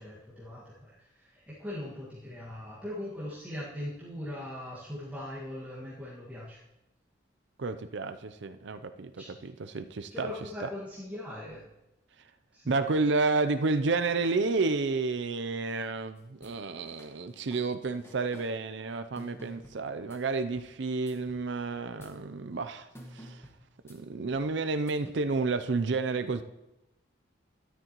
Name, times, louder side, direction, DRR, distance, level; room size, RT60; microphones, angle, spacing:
voice 1, 0.0-6.6 9.2-9.3 9.8-9.9 10.1-11.7 12.5-12.7 13.0-13.2, left 1 dB, 5° right, -10 dB, 1.8 m, -40 dB
voice 2, 7.6-10.3 10.6-10.7 12.7-23.4 23.9-26.4, right 3 dB, 65° right, 10 dB, 0.5 m, -30 dB
sound 1, 16.2-16.6 16.8-18.5 19.2-20.8 21.1-21.5 21.8-22.2 23.0-24.5 24.9-25.1, equal, 15° left, 1.2 m, -51 dB
13.0 x 10.5 x 3.0 m, 0.92 s
head